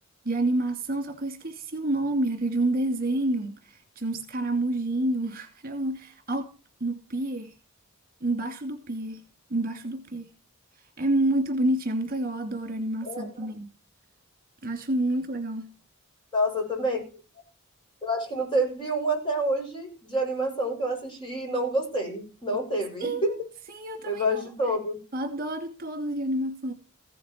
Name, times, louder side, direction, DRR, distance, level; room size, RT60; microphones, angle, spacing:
voice 1, 0.2-6.5 6.8-7.6 8.2-9.2 9.5-10.3 10.7-13.7 14.6-15.7 23.0-23.4 23.7-24.5 25.1-26.7, right 1 dB, 45° right, 2.5 m, -28 dB
voice 2, 13.0-13.5 16.3-17.0 18.0-23.3 24.1-25.0, right 1 dB, 25° left, 6.0 m, -28 dB
15.5 x 9.3 x 4.5 m
head